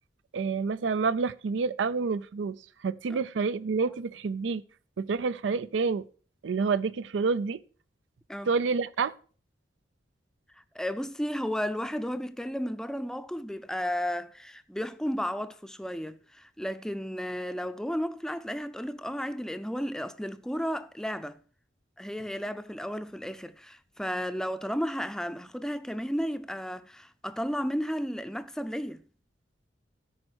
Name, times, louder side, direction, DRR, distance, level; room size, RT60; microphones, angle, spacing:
voice 1, 0.3-2.6 2.8-4.6 5.0-6.0 6.4-7.6 8.5-9.1, right 4 dB, 85° right, 0.4 m, -28 dB
voice 2, 10.7-21.4 22.0-29.0, equal, 5° left, 0.5 m, -33 dB
13.0 x 5.3 x 6.2 m
head